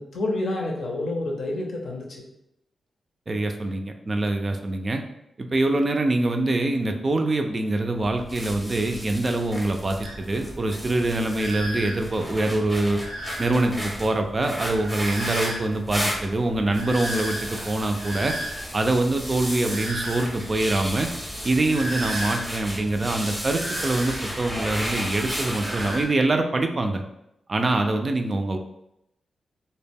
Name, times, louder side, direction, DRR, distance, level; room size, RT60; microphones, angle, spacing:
voice 1, 0.0-2.2, left 2 dB, 70° left, -1 dB, 0.6 m, -29 dB
voice 2, 3.3-5.0 5.4-13.0 13.4-18.4 18.7-21.1 21.4-27.0 27.5-28.6, right 2 dB, 40° right, 5 dB, 0.3 m, -24 dB
sound 1, 7.9-26.1, equal, ahead, 0.6 m, -34 dB
sound 2, 10.0-26.0, equal, 90° right, 0.5 m, -37 dB
2.1 x 2.0 x 3.4 m, 0.82 s
cardioid pair, 75°, 0 cm